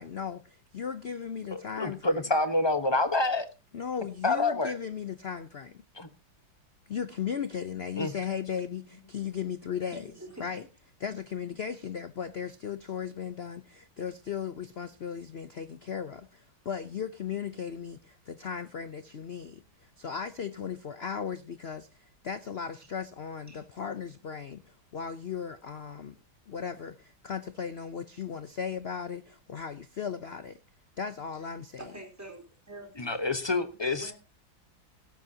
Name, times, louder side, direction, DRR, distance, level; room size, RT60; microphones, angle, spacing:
voice 1, 0.0-2.2 3.7-5.8 6.9-10.1 10.4-10.6 11.0-26.1 26.5-30.6 31.0-31.8, left 7 dB, 80° left, 0.5 m, -36 dB
voice 2, 1.5-3.4 4.2-4.7 6.0-6.1 8.0-8.1 33.0-34.1, left 2 dB, 20° left, 0.7 m, -27 dB
voice 3, 9.9-10.5 23.5-23.7 31.3-31.5 31.8-33.2 33.9-34.1, right 1 dB, 10° right, 3.9 m, -46 dB
16.5 x 13.0 x 2.8 m
omnidirectional pair, 2.1 m